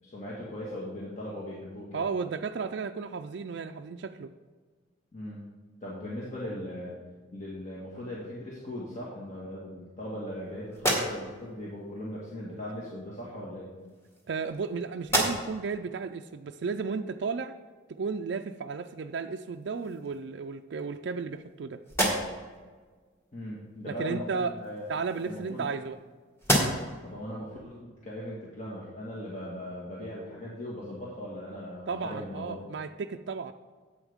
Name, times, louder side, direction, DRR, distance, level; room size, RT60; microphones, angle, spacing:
voice 1, 0.0-2.0 5.1-5.4 5.8-6.9 7.3-13.7 23.3-24.8 25.3-25.7 27.0-32.6, left 1 dB, 40° left, -6 dB, 1.7 m, -39 dB
voice 2, 1.9-4.3 14.3-17.5 17.9-21.8 23.9-24.5 24.9-26.0 31.9-33.5, right 5 dB, 65° right, 6 dB, 0.4 m, -34 dB
sound 1, 10.7-11.6 12.7-12.8 13.8-14.7 15.0-15.7 16.2-16.3 19.0-19.1 19.5-20.2 20.8-21.5 21.8-22.6 24.6-26.0 26.4-27.1, equal, 15° left, 2.0 m, -31 dB
10.5 x 8.2 x 3.6 m, 1.4 s
head